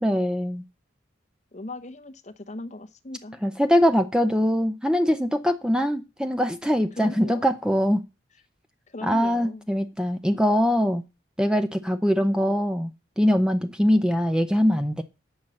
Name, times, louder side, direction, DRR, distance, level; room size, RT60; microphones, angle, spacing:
voice 1, 0.0-0.6 3.4-8.0 9.0-11.1 11.4-12.9 13.2-15.0, equal, 5° right, 0.6 m, -22 dB
voice 2, 1.5-3.4 6.9-7.4 8.9-9.6, left 1 dB, 35° left, 0.9 m, -38 dB
8.8 x 5.5 x 7.7 m
head